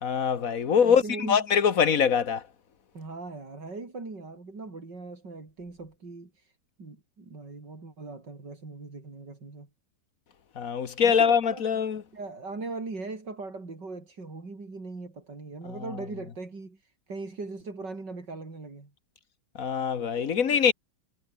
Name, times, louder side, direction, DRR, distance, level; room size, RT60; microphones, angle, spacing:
voice 1, 0.0-2.4 10.6-12.0 19.6-20.7, left 7 dB, 55° left, 1.7 m, -23 dB
voice 2, 0.6-1.4 2.9-6.5 6.8-9.7 11.0-11.6 12.1-18.9, right 3 dB, 85° right, 5.3 m, -40 dB
omnidirectional pair, 1.8 m